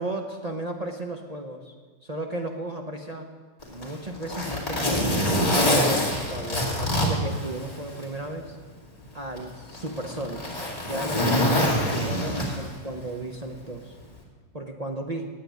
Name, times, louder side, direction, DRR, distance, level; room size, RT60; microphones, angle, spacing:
voice 1, 0.0-1.7 2.0-3.3 3.7-5.2 5.6-8.6 9.1-10.6 10.9-14.0 14.5-15.3, right 1 dB, 40° right, 2 dB, 0.5 m, -34 dB
Zipper (clothing), 3.6-8.1 8.5-8.6 9.4-12.8 14.0-14.2, left 1 dB, 20° left, 2.5 m, -25 dB
9.5 x 8.6 x 9.3 m, 1.4 s
omnidirectional pair, 2.0 m